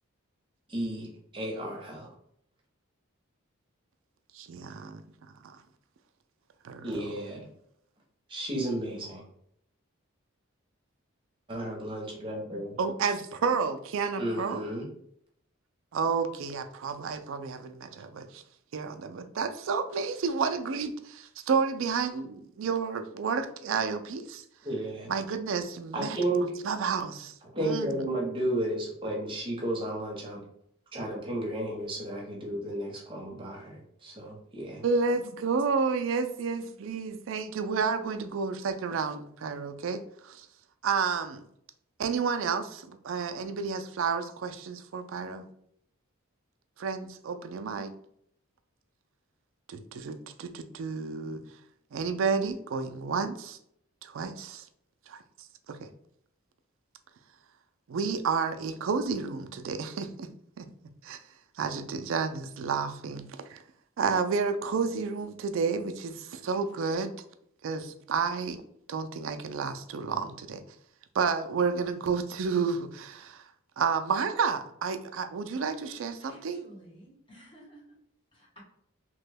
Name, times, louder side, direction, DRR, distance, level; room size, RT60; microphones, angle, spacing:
voice 1, 0.7-1.1 1.3-2.1 6.8-7.5 8.3-9.2 11.5-12.8 14.2-14.8 24.6-25.1 25.9-26.4 27.5-30.4 30.9-34.8, right 1 dB, 25° right, -1 dB, 0.8 m, -33 dB
voice 2, 4.3-5.0 5.4-5.6 6.6-7.2 12.8-14.7 15.9-18.4 18.7-24.4 25.1-27.3 27.6-28.0 34.8-40.5 40.8-41.4 42.0-45.5 46.8-47.9 49.7-51.4 51.9-53.6 54.0-54.6 55.1-55.2 55.7-55.8 57.9-60.3 60.6-60.7 61.0-61.2 61.6-63.6 64.0-67.1 67.6-68.6 68.9-70.6 71.1-73.5 73.8-76.6, right 5 dB, 65° right, 7 dB, 0.3 m, -31 dB
voice 3, 76.2-77.8 78.3-78.6, equal, 25° left, -3 dB, 1.0 m, -53 dB
2.9 x 2.2 x 3.3 m, 0.69 s
head